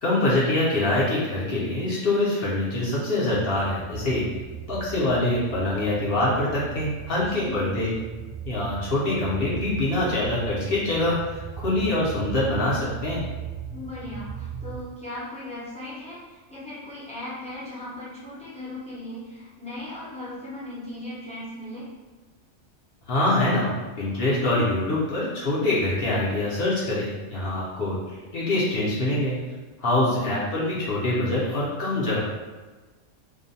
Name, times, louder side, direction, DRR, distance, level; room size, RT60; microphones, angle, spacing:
voice 1, 0.0-4.2 4.7-7.9 8.5-13.2 23.1-23.7 24.0-28.0 28.3-29.4 29.8-32.2, left 2 dB, 55° left, -7 dB, 0.7 m, -24 dB
sound 1, 3.3-14.8, right 8 dB, 65° right, 0.3 m, -38 dB
voice 2, 7.2-7.6 13.7-21.8 30.1-30.3, left 1 dB, 10° left, -10 dB, 0.5 m, -38 dB
2.5 x 2.1 x 2.6 m, 1.3 s
omnidirectional pair, 1.4 m